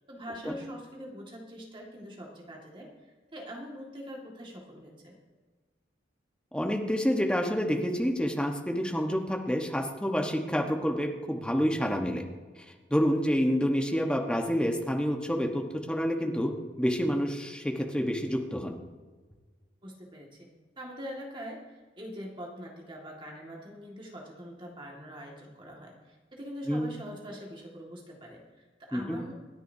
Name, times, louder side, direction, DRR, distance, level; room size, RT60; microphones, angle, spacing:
voice 1, 0.1-2.9 3.3-5.2 19.8-20.5 20.8-29.3, equal, 25° right, -1 dB, 2.0 m, -43 dB
voice 2, 6.5-12.2 12.6-16.5 16.8-18.8 26.7-26.9 28.9-29.2, equal, 5° left, 2 dB, 1.2 m, -28 dB
27.0 x 10.0 x 2.8 m, 1.4 s
head